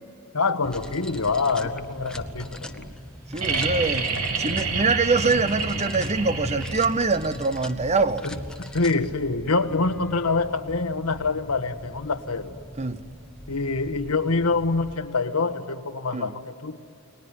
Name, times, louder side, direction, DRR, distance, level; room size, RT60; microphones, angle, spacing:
voice 1, 0.3-2.9 8.2-12.5 13.5-16.8, left 3 dB, 80° left, 1.4 m, -26 dB
sound 1, 0.6-15.0, equal, 5° left, 1.1 m, -40 dB
voice 2, 3.3-4.1 4.4-8.3 12.8-13.0 16.1-16.3, right 4 dB, 30° right, 0.8 m, -24 dB
sound 2, 3.4-7.2 8.9-9.0, right 4 dB, 90° right, 3.2 m, -28 dB
30.0 x 21.0 x 9.6 m
head